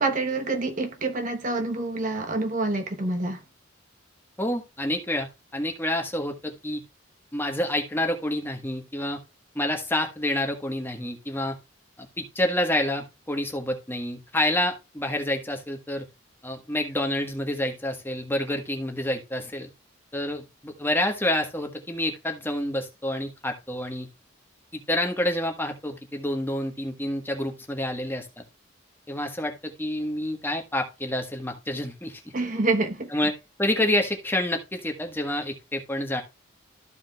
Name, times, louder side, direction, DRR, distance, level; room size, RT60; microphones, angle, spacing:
voice 1, 0.0-3.4 32.3-33.1, right 2 dB, 40° right, 1.0 m, -27 dB
voice 2, 4.4-5.3 5.5-6.8 7.3-9.2 9.5-11.6 12.0-16.0 16.4-19.7 20.1-24.1 24.7-28.3 29.1-32.2 33.1-33.3 33.6-36.2, left 1 dB, 10° left, 1.4 m, -28 dB
14.0 x 5.0 x 2.4 m
head